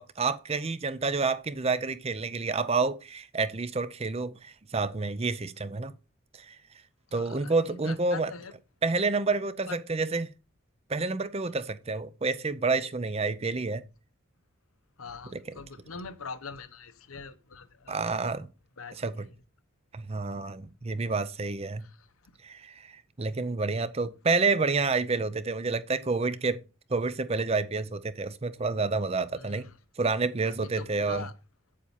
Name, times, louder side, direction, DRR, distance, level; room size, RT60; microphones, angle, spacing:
voice 1, 0.0-5.9 6.4-6.6 7.1-8.3 8.8-10.3 10.9-13.8 15.3-15.6 17.9-18.5 18.9-19.3 19.9-21.9 22.4-22.9 23.2-26.6 26.9-29.7 30.0-31.3, right 3 dB, 30° right, 0.5 m, -29 dB
voice 2, 7.1-8.5 9.7-9.8 15.0-18.0 18.8-19.1 29.3-29.6 30.5-31.3, left 4 dB, 80° left, 1.0 m, -43 dB
8.5 x 7.5 x 4.2 m
head